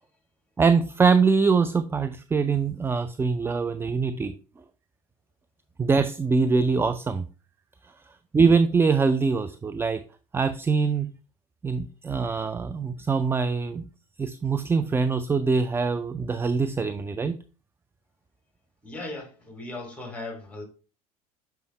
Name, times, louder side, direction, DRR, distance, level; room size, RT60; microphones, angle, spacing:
voice 1, 0.6-4.3 5.8-7.3 8.3-10.0 10.3-11.1 11.6-13.8 14.2-17.4, right 5 dB, 10° right, 0.3 m, -23 dB
voice 2, 18.8-20.6, left 2 dB, 5° left, 2.6 m, -37 dB
6.8 x 4.6 x 3.2 m
figure-of-eight pair, 65°, 19 cm